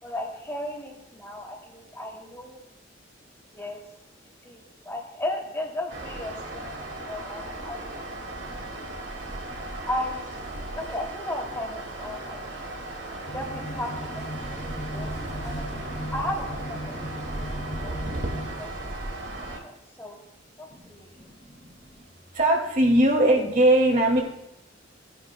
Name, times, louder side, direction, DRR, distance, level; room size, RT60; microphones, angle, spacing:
voice 1, 0.0-2.6 3.5-3.8 4.4-8.1 8.6-8.9 9.9-10.3 10.8-12.9 13.3-15.1 15.4-17.3 17.8-18.0 18.3-18.7 19.4-20.2 20.6-21.3, left 1 dB, 15° left, -1 dB, 2.5 m, -36 dB
sound 1, 5.9-19.6, right 2 dB, 65° right, 2.0 m, -36 dB
sound 2, 13.3-18.5, equal, 55° left, 2.0 m, -36 dB
voice 2, 21.2-22.1 22.3-24.2, right 1 dB, 45° right, 1 dB, 2.4 m, -21 dB
18.0 x 10.5 x 2.2 m, 0.85 s
head